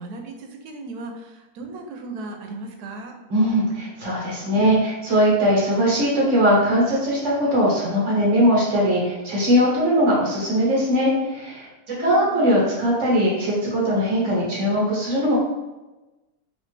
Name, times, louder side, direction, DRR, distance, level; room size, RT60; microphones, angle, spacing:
voice 1, 0.0-3.1 11.9-12.5, right 3 dB, 90° right, 4 dB, 1.1 m, -36 dB
voice 2, 3.3-15.4, equal, 55° right, -6 dB, 1.5 m, -20 dB
3.2 x 2.6 x 3.2 m, 1.1 s
omnidirectional pair, 1.6 m